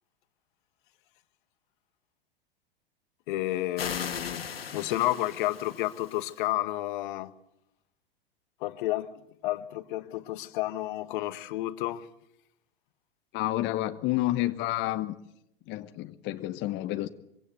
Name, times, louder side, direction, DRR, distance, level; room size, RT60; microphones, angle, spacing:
voice 1, 3.3-7.3 8.6-12.1, left 15 dB, 60° left, 1.4 m, -31 dB
sound 1, 3.8-6.3, left 7 dB, 85° left, 2.1 m, -38 dB
voice 2, 13.3-15.2 15.7-17.1, left 16 dB, 40° left, 1.1 m, -29 dB
23.5 x 16.5 x 7.9 m
hypercardioid pair, 100°, 29 cm